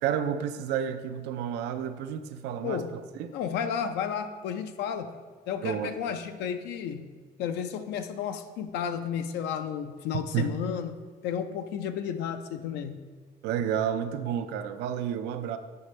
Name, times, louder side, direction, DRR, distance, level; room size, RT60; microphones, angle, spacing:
voice 1, 0.0-3.4 5.6-5.9 10.3-10.5 13.4-15.6, right 9 dB, 90° right, 9 dB, 0.4 m, -31 dB
voice 2, 3.3-5.2 5.5-7.1 7.4-11.0 11.2-13.0, left 8 dB, 85° left, 8 dB, 0.5 m, -32 dB
7.6 x 5.1 x 3.2 m, 1.4 s
cardioid pair, 110°, 17 cm